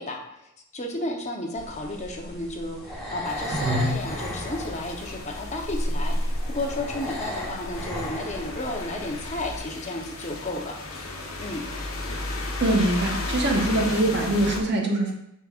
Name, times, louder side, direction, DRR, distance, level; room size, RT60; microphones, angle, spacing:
voice 1, 0.0-10.8 11.4-11.6, left 2 dB, 35° left, 1 dB, 0.9 m, -33 dB
sound 1, 1.6-9.6, equal, ahead, 2.3 m, -32 dB
sound 2, 3.3-14.6, left 2 dB, 70° left, 1.1 m, -35 dB
voice 2, 12.6-15.1, right 1 dB, 55° right, 1 dB, 1.2 m, -23 dB
6.5 x 6.2 x 2.5 m, 0.81 s
head